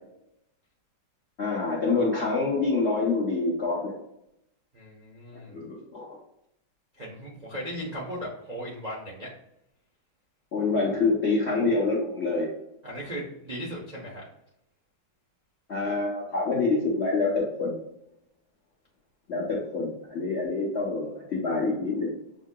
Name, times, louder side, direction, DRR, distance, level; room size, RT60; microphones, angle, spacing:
voice 1, 1.4-3.9 5.5-6.2 10.5-12.5 15.7-17.8 19.3-22.1, left 3 dB, 60° left, -5 dB, 0.7 m, -26 dB
voice 2, 4.7-5.6 6.9-9.3 12.8-14.2, equal, 65° right, -4 dB, 0.4 m, -37 dB
6.9 x 2.8 x 2.2 m, 0.82 s
omnidirectional pair, 2.4 m